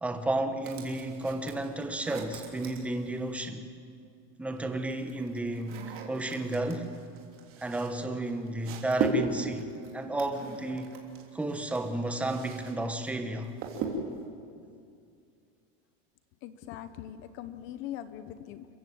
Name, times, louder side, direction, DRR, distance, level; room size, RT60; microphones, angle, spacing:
voice 1, 0.0-3.6 4.4-6.9 7.6-11.0 11.3-13.5, right 2 dB, 5° right, 6 dB, 1.1 m, -32 dB
sound 1, 0.6-3.5 4.5-12.7 13.0-14.3, right 4 dB, 40° right, 3.3 m, -38 dB
voice 2, 16.4-18.7, left 11 dB, 35° left, 12 dB, 0.8 m, -41 dB
29.0 x 15.5 x 7.8 m, 2.3 s
supercardioid pair, 160°, 33 cm